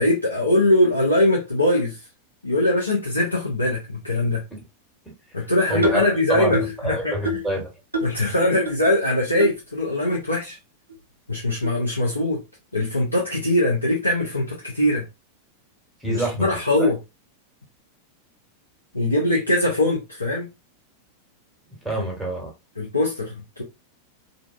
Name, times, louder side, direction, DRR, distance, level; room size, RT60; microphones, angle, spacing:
voice 1, 0.0-2.0 2.4-4.4 5.3-7.2 8.0-10.6 11.3-12.4 12.7-15.0 16.1-17.0 18.9-20.5 22.8-23.6, left 1 dB, 85° left, 0.5 m, -21 dB
voice 2, 5.7-7.7 16.0-16.5 16.8-16.9 21.8-22.5, right 1 dB, 5° right, 1.1 m, -27 dB
sound 1, 5.8-6.1 6.5-6.8 7.3-7.5 7.9-8.2 8.7-8.8 9.4-9.5 10.1-10.2 10.9-11.0 11.6-11.8, equal, 80° right, 0.4 m, -27 dB
2.5 x 2.2 x 2.3 m
figure-of-eight pair, 90°, 0 cm